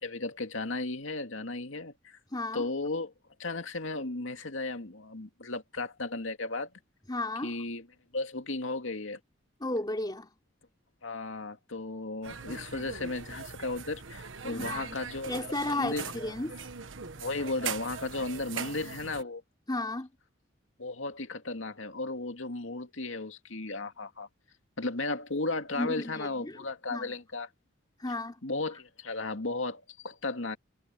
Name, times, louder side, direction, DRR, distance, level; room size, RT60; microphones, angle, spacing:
voice 1, 0.0-2.2 2.5-3.1 3.4-6.7 7.4-7.9 8.1-9.2 11.0-15.3 15.7-16.1 17.2-19.4 20.8-24.3 24.8-27.5 28.4-30.6, left 2 dB, 85° left, 2.4 m, -35 dB
voice 2, 2.3-2.7 7.1-7.5 9.6-10.3 14.5-15.0 15.3-16.6 19.7-20.1 25.7-26.6 26.9-27.2 28.0-28.4, left 2 dB, 20° left, 3.3 m, -34 dB
sound 1, 12.2-19.2, right 6 dB, 85° right, 1.3 m, -41 dB
head